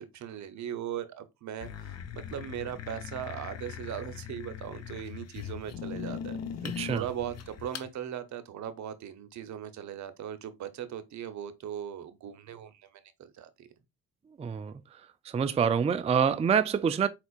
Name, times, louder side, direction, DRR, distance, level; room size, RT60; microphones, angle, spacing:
voice 1, 0.0-6.4 6.8-13.7, right 10 dB, 70° right, 0.9 m, -39 dB
sound 1, 1.6-7.9, left 8 dB, 55° left, 0.8 m, -40 dB
voice 2, 6.6-7.0 14.4-14.7 15.3-17.1, right 7 dB, 20° right, 0.4 m, -26 dB
4.5 x 4.3 x 2.4 m
cardioid pair, 90°, 30 cm